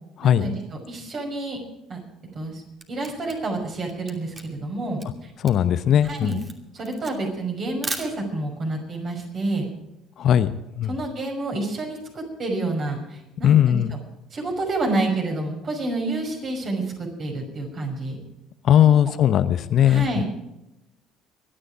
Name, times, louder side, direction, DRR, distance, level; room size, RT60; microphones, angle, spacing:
voice 1, 0.2-0.5 0.9-1.6 1.9-2.0 2.3-2.6 2.9-5.3 6.0-6.4 6.7-9.7 10.9-14.0 14.3-18.2 18.9-19.1 19.9-20.2, right 2 dB, 45° right, 2 dB, 5.7 m, -29 dB
Camera, 2.6-8.6, right 3 dB, 30° right, 2.7 m, -38 dB
voice 2, 5.4-6.4 10.2-10.9 13.4-13.9 18.6-20.2, left 10 dB, 50° left, 12 dB, 0.9 m, -19 dB
24.5 x 10.0 x 4.9 m, 0.91 s
figure-of-eight pair, 55°, 0 cm